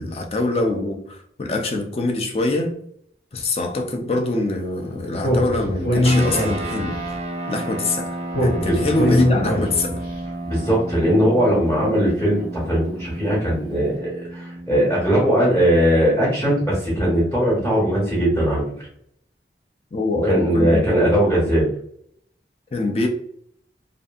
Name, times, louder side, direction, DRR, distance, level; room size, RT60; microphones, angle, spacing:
voice 1, 0.0-2.7 3.3-7.2 7.5-10.0 19.9-20.8 22.7-23.1, left 2 dB, 35° left, 0.4 m, -24 dB
Speech, 5.2-7.0 8.3-10.1, left 1 dB, 85° left, 0.9 m, -21 dB
sound 1, 6.0-17.8, right 2 dB, 35° right, 0.3 m, -33 dB
voice 2, 10.4-18.6 20.2-21.7, equal, 15° left, 0.9 m, -19 dB
2.6 x 2.6 x 2.3 m
head